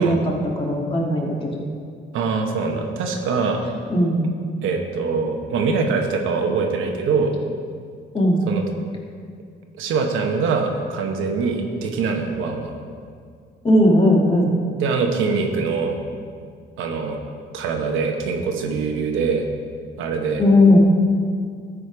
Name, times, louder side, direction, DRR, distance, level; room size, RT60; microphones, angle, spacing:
voice 1, 0.0-1.7 3.9-4.2 8.1-8.4 13.6-14.5 20.4-20.8, left 1 dB, 25° left, -1 dB, 2.0 m, -17 dB
voice 2, 2.1-3.6 4.6-7.3 8.5-8.6 9.8-12.7 14.8-16.0 16.8-17.2 17.5-19.4 20.0-20.4, right 4 dB, 90° right, 3 dB, 1.1 m, -23 dB
13.0 x 5.1 x 5.0 m, 2.1 s
cardioid pair, 90°, 20 cm